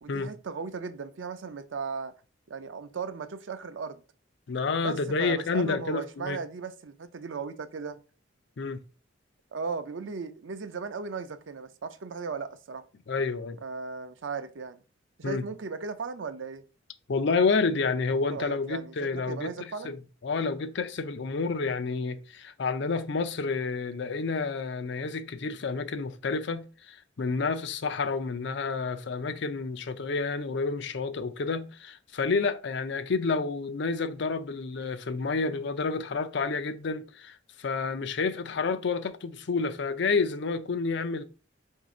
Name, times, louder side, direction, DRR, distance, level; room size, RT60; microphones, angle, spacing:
voice 1, 0.0-2.1 2.5-4.0 4.8-8.0 9.5-12.8 13.6-14.8 15.2-16.6 18.3-20.0, right 5 dB, 90° right, 0.5 m, -37 dB
voice 2, 4.5-6.4 8.6-8.8 13.1-13.6 15.2-15.4 17.1-20.0 20.2-41.2, left 4 dB, 70° left, 0.5 m, -29 dB
4.1 x 2.7 x 4.8 m
head